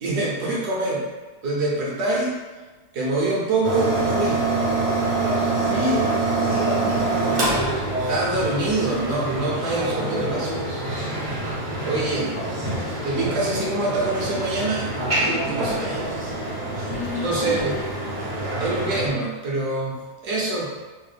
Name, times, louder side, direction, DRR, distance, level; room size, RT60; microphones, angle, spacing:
voice 1, 0.0-1.1 1.4-2.4 2.9-4.5 5.7-6.0 8.1-10.7 11.8-12.4 13.0-16.1 16.7-16.9 17.2-17.8 18.6-20.7, right 2 dB, 70° right, -4 dB, 1.2 m, -25 dB
sound 1, 3.6-19.1, right 2 dB, 50° right, 0.5 m, -25 dB
voice 2, 5.2-7.6 15.6-16.0 16.9-17.7, left 2 dB, 75° left, -6 dB, 1.3 m, -33 dB
3.5 x 2.1 x 3.3 m, 1.3 s
omnidirectional pair, 1.8 m